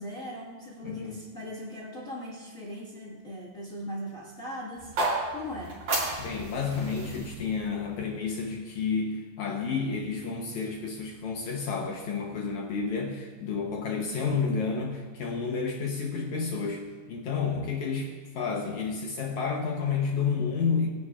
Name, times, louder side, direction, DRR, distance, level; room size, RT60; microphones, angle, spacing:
voice 1, 0.0-5.8, equal, 55° left, -5 dB, 0.9 m, -39 dB
voice 2, 0.8-1.2 6.2-20.9, left 5 dB, 70° left, 0 dB, 1.8 m, -30 dB
match lit, 4.7-8.9, right 2 dB, 55° right, 4.4 m, -33 dB
22.0 x 9.9 x 2.4 m, 1.4 s
omnidirectional pair, 4.5 m